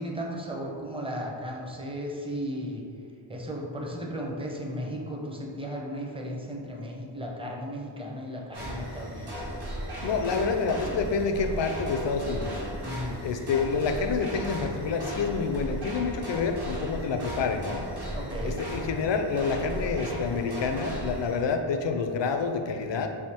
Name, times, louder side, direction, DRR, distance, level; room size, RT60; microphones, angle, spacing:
voice 1, 0.0-2.9 3.3-9.4 12.8-13.2 18.1-18.6, equal, 10° right, -2 dB, 0.7 m, -35 dB
sound 1, 8.5-21.4, equal, 55° right, 1.4 m, -36 dB
voice 2, 10.0-12.6 13.2-17.9 18.4-23.1, left 4 dB, 65° left, 5 dB, 0.5 m, -28 dB
3.6 x 2.8 x 4.3 m, 2.3 s
wide cardioid pair, 75°, 47 cm